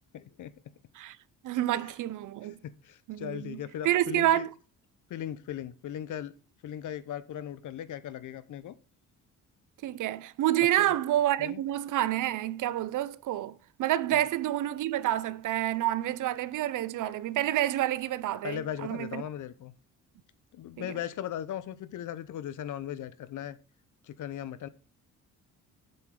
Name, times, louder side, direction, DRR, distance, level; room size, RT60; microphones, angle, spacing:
voice 1, 0.1-0.5 1.8-1.9 2.4-2.5 2.8-4.5 5.1-6.3 6.6-8.7 10.8-11.0 11.4-11.6 14.1-14.2 18.4-19.7 20.5-23.6 24.0-24.7, left 10 dB, 65° left, 0.9 m, -38 dB
voice 2, 1.4-2.6 3.1-4.5 9.8-19.2 20.8-20.9, right 13 dB, 70° right, 0.6 m, -28 dB
7.7 x 6.8 x 3.8 m
cardioid pair, 110°, 32 cm